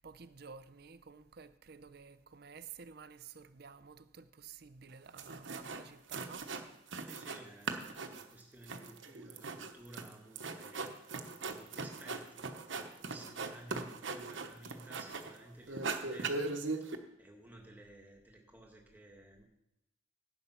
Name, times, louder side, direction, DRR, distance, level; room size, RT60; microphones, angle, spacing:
voice 1, 0.0-6.5, right 5 dB, 50° right, 0.6 m, -52 dB
sound 1, 4.9-5.0 5.2-5.8 6.1-7.4 7.6-15.4 15.7-16.9, right 3 dB, 70° right, 1.0 m, -40 dB
voice 2, 7.0-19.4, right 1 dB, 10° right, 1.8 m, -55 dB
11.0 x 9.0 x 5.8 m
head